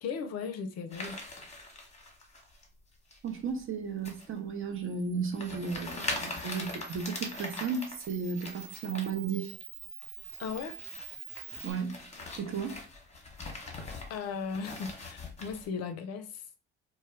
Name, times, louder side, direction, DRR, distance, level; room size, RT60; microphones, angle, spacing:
voice 1, 0.0-1.2 10.4-10.8 14.1-16.4, left 5 dB, 50° left, 0.5 m, -37 dB
sound 1, 0.9-2.7 3.1-3.5 4.0-4.3 4.8-4.9 5.3-9.1 9.4-9.6 10.0-15.7, left 2 dB, 20° left, 0.9 m, -42 dB
voice 2, 3.2-9.5 11.6-11.9 12.4-12.8, right 5 dB, 40° right, 0.8 m, -34 dB
Camera, 4.7-11.7, right 8 dB, 75° right, 0.6 m, -47 dB
2.1 x 2.1 x 3.3 m
hypercardioid pair, 65°, 33 cm